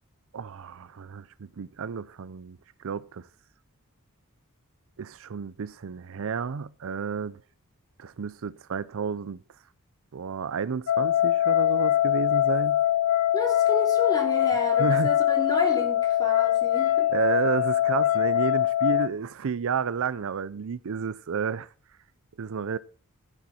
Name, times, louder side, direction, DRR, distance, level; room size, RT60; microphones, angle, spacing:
voice 1, 0.3-2.6 2.8-3.3 5.0-7.4 8.0-9.4 10.1-12.8 14.8-15.2 17.1-21.7 22.4-22.8, right 6 dB, 65° right, 0.5 m, -31 dB
sound 1, 10.9-19.1, left 12 dB, 80° left, 0.5 m, -23 dB
voice 2, 13.3-17.1, left 1 dB, 20° left, 3.0 m, -31 dB
12.5 x 10.0 x 4.3 m
head